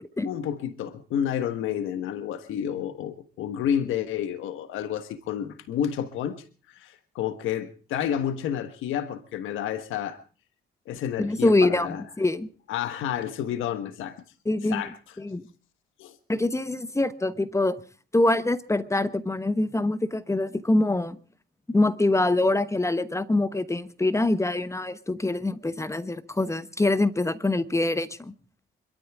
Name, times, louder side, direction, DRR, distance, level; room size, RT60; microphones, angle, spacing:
voice 1, 0.2-10.2 10.9-12.0 12.7-14.2 14.6-14.9 16.0-16.2, left 9 dB, 85° left, 11 dB, 1.4 m, -30 dB
voice 2, 11.2-12.5 14.4-14.8 15.2-15.4 16.3-17.8 18.1-21.2 21.7-28.3, left 2 dB, 15° left, 14 dB, 1.1 m, -24 dB
26.0 x 13.0 x 3.6 m, 0.38 s
cardioid pair, 90°, 20 cm